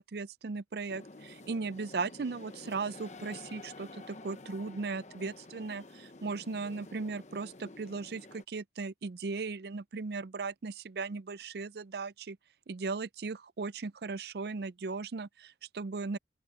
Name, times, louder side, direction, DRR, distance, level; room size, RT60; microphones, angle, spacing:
voice 1, 0.0-12.4 12.7-16.2, right 4 dB, 60° right, 0.5 m, -37 dB
sound 1, 0.9-8.4, left 2 dB, 40° left, 1.0 m, -50 dB
open air
head